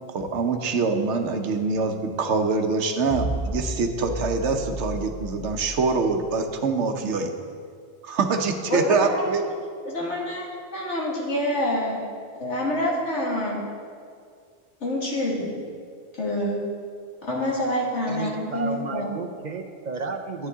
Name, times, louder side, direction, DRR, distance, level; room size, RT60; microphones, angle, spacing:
voice 1, 0.1-7.3 8.0-9.4, right 4 dB, 85° right, 6 dB, 1.1 m, -24 dB
sound 1, 3.1-6.5, equal, 40° left, 0.9 m, -33 dB
voice 2, 8.7-9.4 9.8-10.4 10.7-12.0 12.4-13.6 14.8-15.5 16.2-16.6 17.2-19.1, left 1 dB, 85° left, -3 dB, 2.1 m, -26 dB
voice 3, 18.1-20.5, right 4 dB, 50° right, 5 dB, 0.7 m, -32 dB
11.0 x 9.4 x 3.6 m, 2.2 s
omnidirectional pair, 1.2 m